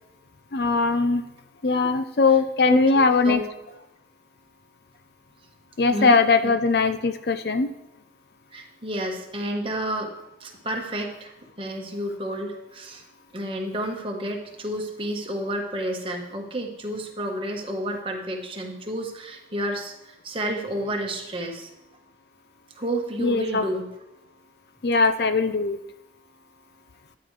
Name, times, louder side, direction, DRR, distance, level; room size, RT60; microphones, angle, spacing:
voice 1, 0.5-1.2 1.6-3.4 5.8-7.7 23.2-23.6 24.8-25.8, left 4 dB, 60° left, 10 dB, 0.6 m, -20 dB
voice 2, 2.7-3.5 5.9-6.5 8.5-10.1 10.4-11.3 11.6-13.0 13.3-21.7 22.8-23.9, right 1 dB, 30° right, 1 dB, 1.3 m, -30 dB
13.5 x 9.4 x 3.3 m, 0.95 s
head